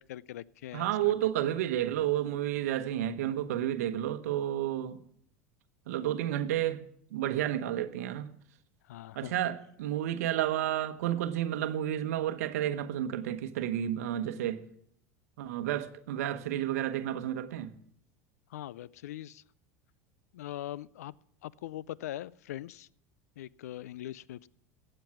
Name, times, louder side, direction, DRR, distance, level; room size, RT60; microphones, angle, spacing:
voice 1, 0.0-1.1 8.9-9.3 18.5-19.4 20.3-21.1 21.4-22.9 23.4-24.5, left 13 dB, 85° left, 0.4 m, -41 dB
voice 2, 0.7-5.0 5.9-6.8 7.1-8.3 9.1-14.6 15.4-17.7, right 12 dB, 80° right, 1.0 m, -31 dB
15.5 x 8.8 x 6.0 m
hypercardioid pair, 95°, 8 cm